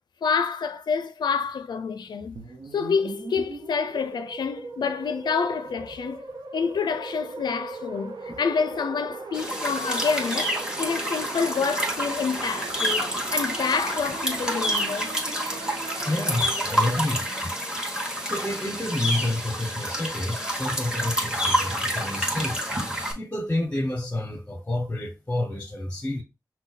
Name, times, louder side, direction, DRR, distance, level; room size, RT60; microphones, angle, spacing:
voice 1, 0.2-2.4 2.7-6.2 6.5-15.1, left 5 dB, 85° left, 0.4 m, -28 dB
sound 1, 2.4-17.1, right 4 dB, 90° right, 0.7 m, -39 dB
sound 2, 9.3-23.1, equal, 10° right, 1.5 m, -28 dB
voice 2, 16.0-17.5 18.2-22.6 23.2-26.2, left 1 dB, 20° left, 0.8 m, -29 dB
5.9 x 2.2 x 4.0 m
wide cardioid pair, 105°, 7 cm